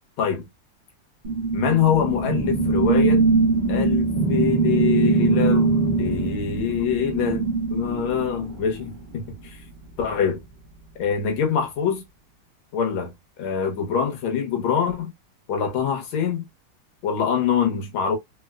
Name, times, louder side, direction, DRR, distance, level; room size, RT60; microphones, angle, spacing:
sound 1, 1.2-9.0, right 3 dB, 60° right, 0.5 m, -22 dB
voice 1, 1.5-3.2 3.7-7.4 7.7-9.6 10.0-10.4 11.0-12.0 12.7-15.1 15.5-16.5 17.0-18.2, left 7 dB, 85° left, 1.8 m, -24 dB
3.8 x 2.1 x 2.3 m
omnidirectional pair, 2.2 m